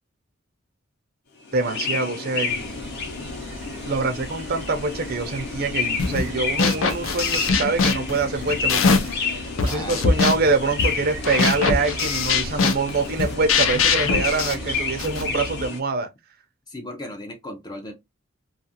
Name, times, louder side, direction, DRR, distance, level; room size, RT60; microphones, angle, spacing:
sound 1, 1.5-15.8, left 5 dB, 60° left, 0.7 m, -30 dB
voice 1, 1.5-2.8 3.8-16.1, right 3 dB, 50° right, 0.6 m, -25 dB
sound 2, 2.5-15.7, right 3 dB, 70° right, 0.9 m, -38 dB
sound 3, 6.0-6.3 6.6-9.2 9.6-15.3, left 4 dB, 85° left, 0.5 m, -22 dB
voice 2, 9.6-10.1 16.7-17.9, left 1 dB, 20° left, 0.5 m, -35 dB
2.4 x 2.4 x 2.7 m
head